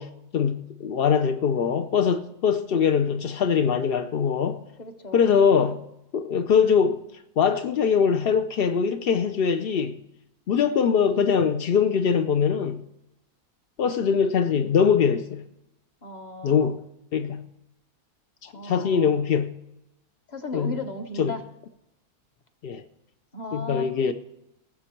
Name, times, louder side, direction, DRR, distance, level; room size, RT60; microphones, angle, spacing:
voice 1, 0.0-4.6 5.1-5.8 6.1-7.0 7.4-10.0 10.5-12.8 13.8-15.4 16.4-16.8 17.1-17.5 18.4-19.5 20.5-20.8 21.2-21.3 22.6-22.8 23.5-24.1, left 6 dB, 70° left, 0.5 m, -22 dB
voice 2, 4.8-5.3 16.0-16.7 18.5-19.1 20.3-21.4 23.3-24.1, left 1 dB, 30° left, 1.1 m, -36 dB
19.0 x 7.4 x 4.4 m
omnidirectional pair, 1.7 m